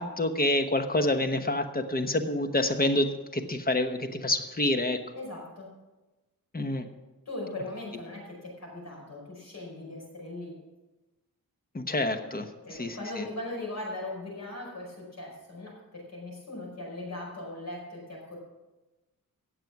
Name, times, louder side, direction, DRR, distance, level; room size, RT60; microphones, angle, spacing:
voice 1, 0.0-5.0 6.5-6.9 11.7-12.5 12.8-13.0, left 1 dB, 25° left, 7 dB, 1.1 m, -27 dB
voice 2, 5.1-5.7 7.3-10.6 12.6-18.4, left 2 dB, 50° left, -2 dB, 5.2 m, -39 dB
17.5 x 6.9 x 5.9 m, 1.1 s
wide cardioid pair, 135°, 35 cm